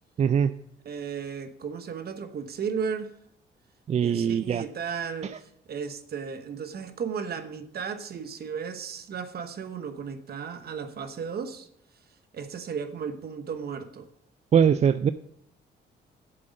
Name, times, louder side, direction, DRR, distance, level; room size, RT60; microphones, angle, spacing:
voice 1, 0.2-0.5 3.9-4.6 5.2-5.3 14.5-15.1, right 7 dB, 35° right, 13 dB, 0.4 m, -22 dB
voice 2, 0.8-3.1 4.0-5.3 5.7-11.7 12.3-14.1, right 6 dB, 55° right, 9 dB, 1.1 m, -34 dB
7.7 x 7.7 x 5.2 m, 0.70 s
cardioid pair, 90°, 20 cm